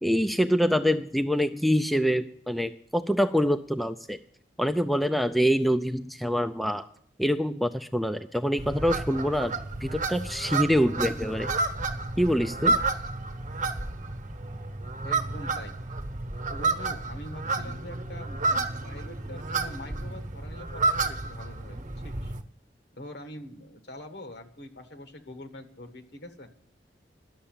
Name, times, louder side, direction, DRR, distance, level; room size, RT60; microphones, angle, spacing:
voice 1, 0.0-4.2 4.6-6.9 7.2-9.5 9.8-11.5 12.2-12.8, equal, ahead, 8 dB, 0.4 m, -25 dB
sound 1, 8.6-22.4, right 3 dB, 45° right, 1.1 m, -31 dB
voice 2, 15.0-15.8 16.5-18.4 18.8-22.3 23.0-26.5, left 1 dB, 65° left, 6 dB, 1.4 m, -44 dB
11.5 x 6.9 x 8.8 m, 0.62 s
head